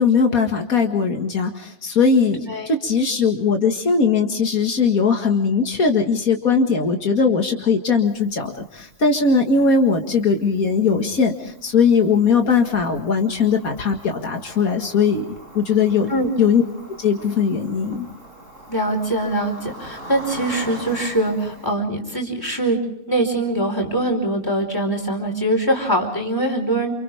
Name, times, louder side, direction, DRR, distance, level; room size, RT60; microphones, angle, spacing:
voice 1, 0.0-15.2 15.5-16.1 16.4-16.6 17.0-18.1, left 5 dB, 80° left, 3 dB, 2.3 m, -19 dB
Cricket, 8.1-21.7, right 1 dB, 65° right, 5.5 m, -42 dB
voice 2, 18.7-22.8 23.1-26.9, right 1 dB, 15° left, 2 dB, 4.9 m, -22 dB
29.5 x 28.5 x 3.5 m, 0.76 s
omnidirectional pair, 1.5 m